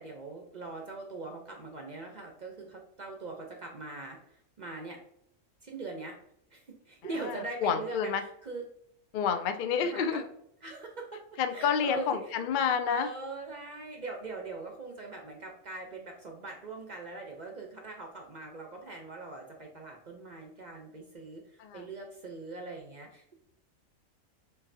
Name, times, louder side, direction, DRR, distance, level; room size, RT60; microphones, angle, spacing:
voice 1, 0.0-5.0 5.6-6.2 6.5-8.6 9.8-10.2 10.6-12.4 12.9-23.3, right 3 dB, 45° right, 1 dB, 0.6 m, -42 dB
voice 2, 7.6-8.2 9.1-10.2 11.4-13.1 21.6-21.8, left 7 dB, 75° left, 8 dB, 0.4 m, -29 dB
6.7 x 2.6 x 2.6 m, 0.73 s
omnidirectional pair, 1.4 m